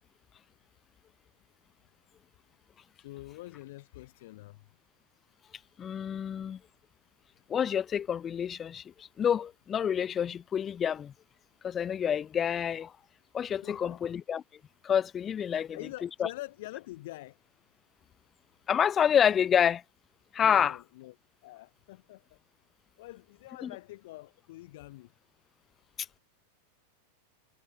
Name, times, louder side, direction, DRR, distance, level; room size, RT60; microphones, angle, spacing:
voice 1, 3.0-4.6 13.6-14.0 15.5-17.4 20.4-21.1 21.4-22.4 23.0-25.1, left 18 dB, 50° left, 0.8 m, -45 dB
voice 2, 5.8-6.6 7.5-11.1 11.6-12.9 13.3-14.4 14.8-15.8 16.2-16.3 18.7-19.8 20.3-20.8 23.6-23.7, left 8 dB, 25° left, 0.3 m, -28 dB
figure-of-eight pair, 90°, 0 cm